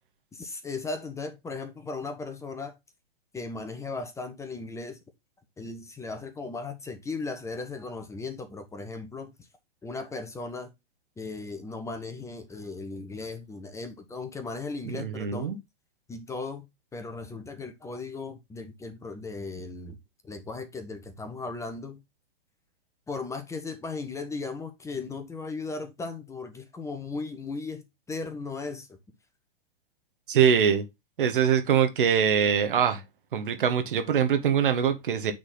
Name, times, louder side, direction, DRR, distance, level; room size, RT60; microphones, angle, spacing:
voice 1, 0.3-2.8 3.3-5.0 5.6-9.3 9.8-10.7 11.2-15.6 16.1-16.7 16.9-20.0 20.2-22.0 23.1-28.9, left 3 dB, 10° left, 1.0 m, -37 dB
voice 2, 14.9-15.6 30.3-30.9 31.2-33.0 33.3-35.3, right 8 dB, 60° right, 1.3 m, -23 dB
8.6 x 4.0 x 3.9 m
figure-of-eight pair, 110°, 29 cm